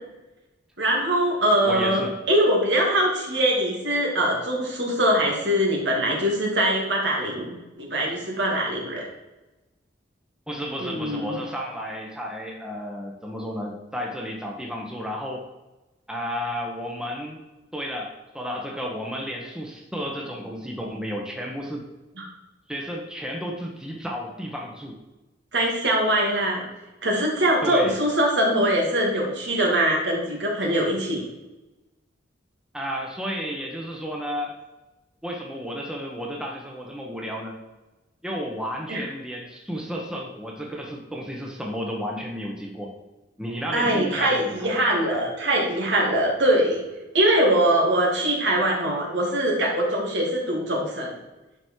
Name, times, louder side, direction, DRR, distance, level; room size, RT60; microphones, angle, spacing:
voice 1, 0.8-9.0 10.8-11.4 22.2-22.3 25.5-26.6 27.0-31.3 38.9-39.1 43.7-46.8 47.1-51.1, right 1 dB, 70° right, -1 dB, 2.6 m, -22 dB
voice 2, 1.7-2.1 10.5-15.4 16.1-17.4 17.7-21.9 22.7-25.0 27.6-27.9 32.7-34.5 35.2-37.6 38.2-42.9 43.4-44.9, equal, 5° right, 0 dB, 1.2 m, -32 dB
11.0 x 5.3 x 4.6 m, 1.1 s
head